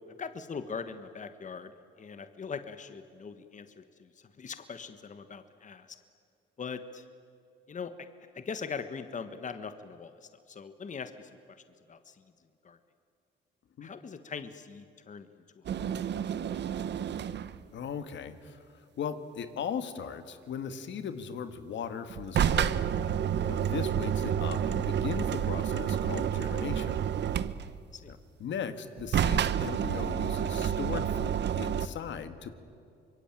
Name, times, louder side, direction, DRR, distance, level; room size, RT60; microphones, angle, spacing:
voice 1, 0.1-1.7 2.0-4.1 4.4-6.0 6.6-7.0 7.7-8.1 8.3-11.3 11.9-12.2 12.6-12.8 13.8-15.3 15.5-16.3 27.9-28.1, left 5 dB, 40° left, 10 dB, 1.4 m, -41 dB
sound 1, 15.7-17.6 22.1-27.9 29.0-31.9, right 9 dB, 60° right, 1.0 m, -29 dB
voice 2, 17.7-18.6 19.0-23.0 23.5-26.9 28.1-32.5, left 7 dB, 70° left, 10 dB, 1.8 m, -38 dB
25.5 x 22.5 x 9.0 m, 2.5 s
cardioid pair, 90°, 20 cm